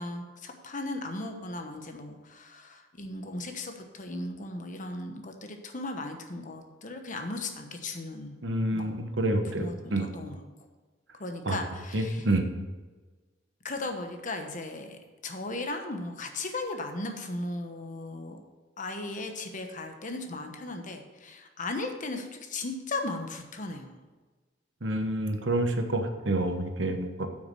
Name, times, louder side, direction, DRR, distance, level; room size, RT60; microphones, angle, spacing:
voice 1, 0.0-8.4 8.7-9.1 9.4-10.5 11.2-12.3 13.6-18.4 18.8-24.0, left 2 dB, 45° left, 5 dB, 1.1 m, -37 dB
voice 2, 8.4-10.1 11.5-11.6 11.9-12.4 24.8-27.3, right 1 dB, 70° right, 6 dB, 1.1 m, -28 dB
8.8 x 6.2 x 6.2 m, 1.3 s
head